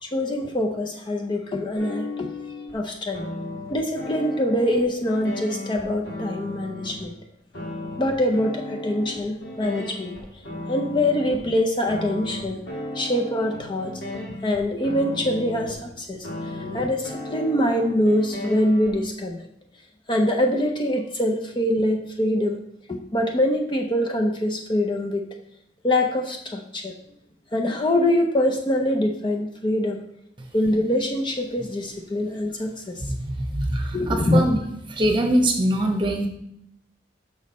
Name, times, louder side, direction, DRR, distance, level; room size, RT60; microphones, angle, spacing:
voice 1, 0.0-2.3 2.7-3.2 3.7-7.2 8.0-10.2 10.7-12.6 12.9-13.9 14.4-19.4 20.1-22.6 22.9-25.2 25.8-26.9 27.5-30.1 30.5-33.0 33.9-34.4, left 1 dB, 25° left, 2 dB, 0.5 m, -24 dB
sound 1, 1.7-2.8 3.1-7.0 7.5-11.4 11.9-15.9 16.2-19.0, left 1 dB, 85° left, 2.3 m, -35 dB
voice 2, 33.0-34.6 34.9-36.3, right 1 dB, 25° right, 3 dB, 1.0 m, -23 dB
6.3 x 6.1 x 4.1 m, 0.77 s
head